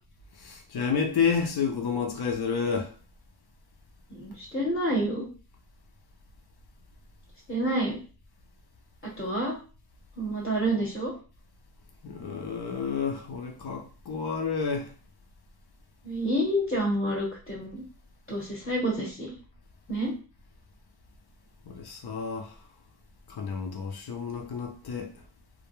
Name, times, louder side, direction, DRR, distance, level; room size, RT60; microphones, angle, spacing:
voice 1, 0.4-2.9 12.0-14.9 21.7-22.6 23.3-25.1, left 6 dB, 65° left, 0.6 m, -30 dB
voice 2, 4.1-5.3 7.5-8.0 9.2-9.6 10.2-11.1 16.0-17.8 18.3-19.3 19.9-20.1, right 1 dB, 20° left, 0.8 m, -28 dB
2.3 x 2.1 x 2.9 m
wide cardioid pair, 75°, 42 cm